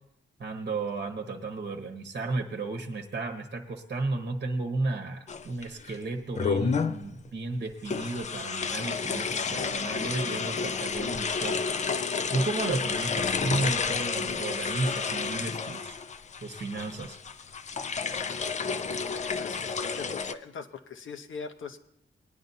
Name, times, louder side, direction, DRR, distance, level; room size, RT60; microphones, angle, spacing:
voice 1, 0.4-12.0 12.3-16.0 16.4-17.2, right 3 dB, 45° right, 4 dB, 1.0 m, -33 dB
sound 1, 5.3-6.0 6.4-7.1 7.9-20.3, left 5 dB, 35° left, 0.4 m, -31 dB
voice 2, 19.1-21.8, left 5 dB, 70° left, 7 dB, 0.9 m, -41 dB
20.5 x 10.5 x 2.7 m, 0.77 s
wide cardioid pair, 165°, 21 cm